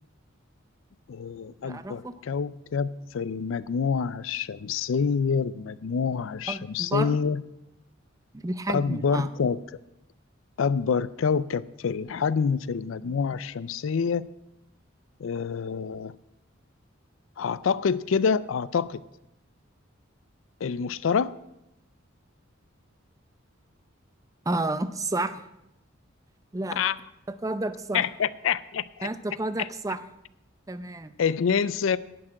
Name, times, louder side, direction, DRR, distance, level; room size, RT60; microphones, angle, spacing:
voice 1, 1.1-7.4 8.7-9.6 10.6-14.3 15.2-16.1 17.4-19.0 20.6-21.3 26.8-27.0 27.9-29.1 29.6-29.7 31.2-32.0, left 6 dB, 70° left, 18 dB, 0.4 m, -27 dB
voice 2, 1.6-2.1 6.5-7.2 8.3-9.3 24.5-25.4 26.5-26.8 27.3-28.1 29.0-30.0 30.7-31.1, right 2 dB, 15° right, 12 dB, 0.5 m, -31 dB
11.0 x 6.0 x 8.7 m, 0.85 s
head